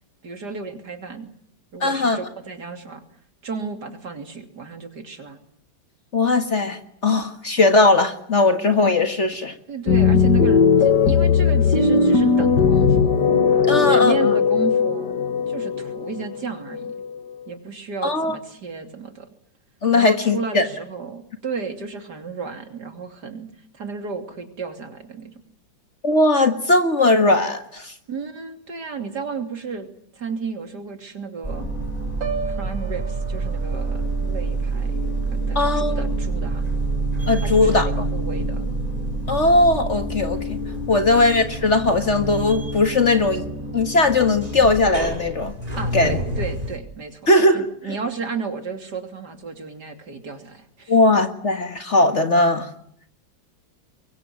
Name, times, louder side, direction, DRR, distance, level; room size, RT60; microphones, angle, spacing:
voice 1, 0.2-1.3 1.7-3.0 3.4-5.4 9.7-13.1 13.8-16.9 17.5-19.3 19.9-23.5 23.7-25.3 28.1-31.7 32.5-35.0 35.3-36.7 37.4-38.7 41.0-41.2 45.8-47.2 47.5-51.0, right 5 dB, 60° right, 6 dB, 3.5 m, -33 dB
voice 2, 1.8-2.2 6.1-9.5 13.7-14.3 18.0-18.4 19.8-20.7 26.0-27.9 35.6-36.1 37.3-38.1 39.3-40.4 40.9-43.4 43.7-45.5 45.9-46.2 47.3-48.0 50.9-52.7, left 2 dB, 40° left, 8 dB, 1.8 m, -19 dB
sound 1, 9.9-17.4, left 5 dB, 65° left, 2.2 m, -18 dB
sound 2, 31.4-46.8, right 2 dB, 20° right, 4.7 m, -27 dB
Piano, 32.2-36.2 36.5-36.9, right 5 dB, 75° right, 2.9 m, -37 dB
24.5 x 23.0 x 9.4 m, 0.66 s
omnidirectional pair, 2.1 m